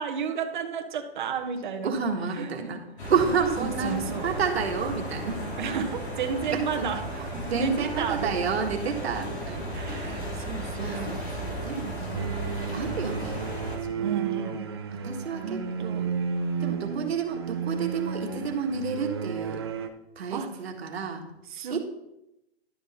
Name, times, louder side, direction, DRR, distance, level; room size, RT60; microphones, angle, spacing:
voice 1, 0.0-2.0 2.3-2.5 3.0-3.3 3.6-4.4 5.6-7.0 7.5-8.4 9.7-11.7 14.0-14.8 15.4-16.1 20.3-20.6 21.5-21.8, right 6 dB, 50° right, 5 dB, 1.1 m, -33 dB
voice 2, 1.8-2.8 3.1-5.4 6.5-6.9 7.2-9.6 10.8-11.2 11.6-12.3 12.7-13.4 13.9-14.3 15.0-16.0 16.6-19.6 20.2-21.2 21.7-21.8, right 6 dB, 70° right, 3 dB, 1.6 m, -30 dB
sound 1, 3.0-13.8, right 1 dB, 85° left, 3.4 m, -35 dB
sound 2, 12.1-19.9, right 5 dB, 25° right, 0.4 m, -32 dB
11.5 x 6.3 x 4.2 m, 0.88 s
hypercardioid pair, 170°, 32 cm